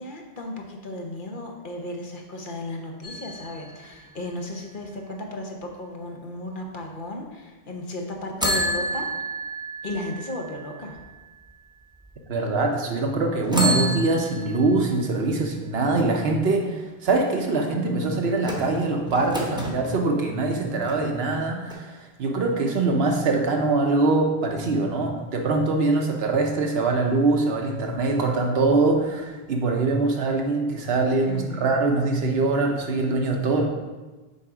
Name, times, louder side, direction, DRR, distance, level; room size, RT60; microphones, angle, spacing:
voice 1, 0.0-9.1 9.8-11.0 31.2-31.7, left 1 dB, 55° left, 2 dB, 1.0 m, -35 dB
sound 1, 3.0-4.9 8.4-11.5 12.1-12.2 13.4-15.2 18.4-19.8 20.5-21.4 21.7-21.8, right 1 dB, 5° right, 0.8 m, -30 dB
voice 2, 12.3-33.7, right 3 dB, 75° right, 2 dB, 1.1 m, -23 dB
6.9 x 3.6 x 4.9 m, 1.2 s
omnidirectional pair, 1.0 m